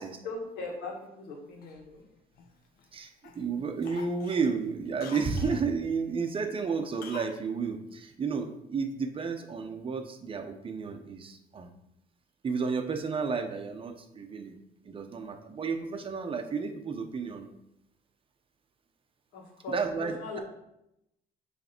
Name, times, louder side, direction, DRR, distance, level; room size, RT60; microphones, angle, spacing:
voice 1, 0.2-2.0 19.3-20.4, left 3 dB, 85° left, 0 dB, 1.8 m, -40 dB
Cough, 1.6-2.9 3.2-3.5 3.8-5.6 7.0-7.4 7.6-7.7, left 7 dB, 60° left, 0.8 m, -47 dB
voice 2, 2.9-11.7 12.4-14.6 14.8-17.5 19.7-20.4, right 5 dB, 30° right, 6 dB, 0.8 m, -32 dB
6.9 x 3.3 x 4.4 m, 0.83 s
cardioid pair, 110°, 17 cm